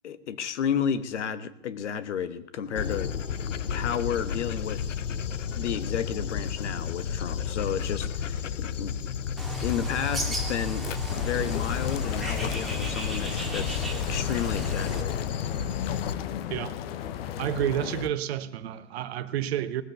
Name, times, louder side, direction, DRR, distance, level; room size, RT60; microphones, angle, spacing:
voice 1, 0.0-3.1 3.7-4.8 5.6-8.9 9.6-10.9 11.2-15.4, left 8 dB, 70° left, 13 dB, 1.4 m, -32 dB
Dog, 2.8-16.1, left 7 dB, 85° left, 0.9 m, -32 dB
Bird, 9.4-15.0, equal, ahead, 2.3 m, -35 dB
sound 1, 11.1-18.1, left 10 dB, 55° left, 1.1 m, -35 dB
voice 2, 17.4-19.8, right 11 dB, 60° right, 13 dB, 1.2 m, -30 dB
18.5 x 7.8 x 6.9 m, 0.87 s
hypercardioid pair, 120°, 36 cm